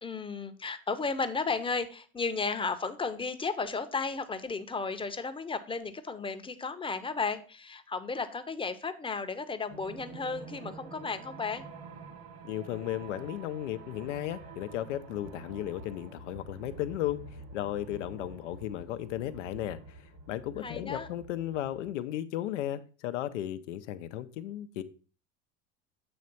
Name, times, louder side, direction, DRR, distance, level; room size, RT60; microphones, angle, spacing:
voice 1, 0.0-11.6 20.6-21.1, left 4 dB, 15° left, 0.7 m, -34 dB
sound 1, 9.7-21.9, right 3 dB, 65° right, 1.6 m, -48 dB
voice 2, 12.4-17.2 17.5-20.0 20.3-24.8, left 12 dB, 90° left, 0.6 m, -35 dB
7.9 x 3.2 x 5.3 m
hypercardioid pair, 85°, 35 cm